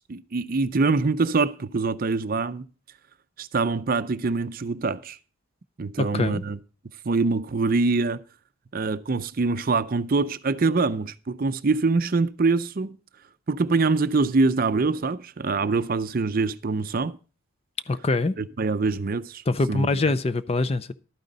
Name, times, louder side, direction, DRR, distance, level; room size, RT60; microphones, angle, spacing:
voice 1, 0.1-2.6 3.4-5.2 5.8-6.6 7.1-8.2 8.7-13.0 13.5-17.2 18.4-19.4 19.7-20.0, right 3 dB, 45° right, 0.5 m, -24 dB
voice 2, 6.0-6.4 17.9-18.4 19.5-20.9, left 3 dB, 30° left, 0.4 m, -24 dB
12.0 x 9.4 x 3.9 m
head